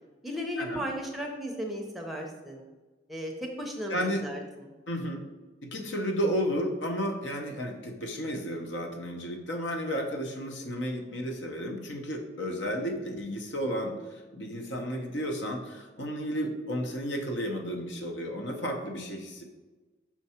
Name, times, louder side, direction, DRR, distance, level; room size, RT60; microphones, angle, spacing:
voice 1, 0.2-2.7 3.1-3.3 3.6-4.7, equal, ahead, 0 dB, 0.7 m, -35 dB
voice 2, 3.9-4.2 4.9-5.2 5.7-19.4, equal, 85° left, 3 dB, 0.9 m, -32 dB
6.0 x 4.6 x 4.3 m, 1.2 s
head